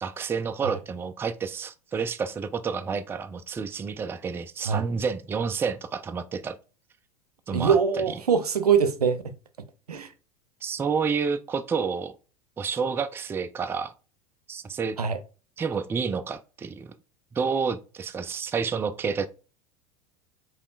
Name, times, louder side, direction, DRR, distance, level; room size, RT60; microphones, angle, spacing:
voice 1, 0.0-6.6 7.5-7.8 10.6-12.2 12.6-13.9 14.5-15.0 15.6-16.9 17.3-19.3, right 5 dB, 10° right, 0.3 m, -29 dB
voice 2, 7.5-9.2 9.9-10.1 15.0-15.2, right 6 dB, 85° right, 0.6 m, -23 dB
5.0 x 3.1 x 2.4 m
figure-of-eight pair, 85°, 19 cm